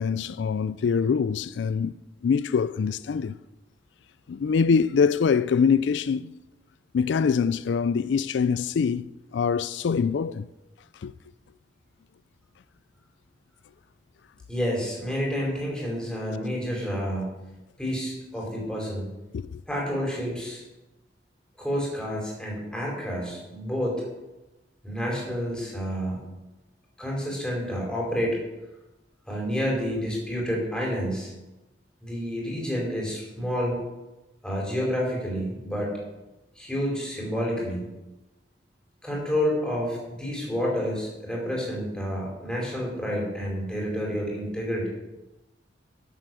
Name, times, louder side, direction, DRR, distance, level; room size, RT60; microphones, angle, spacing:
voice 1, 0.0-1.9 2.2-3.3 4.3-6.3 6.9-9.1 9.3-10.5 11.0-11.1 19.3-19.6, left 6 dB, 75° left, 0.4 m, -24 dB
voice 2, 14.5-17.3 17.8-19.1 19.7-20.6 21.6-24.0 24.8-26.2 27.0-28.4 29.3-31.3 32.0-33.8 34.4-36.0 36.6-37.8 39.0-44.9, equal, 5° left, 4.2 m, -29 dB
11.5 x 7.7 x 7.6 m
head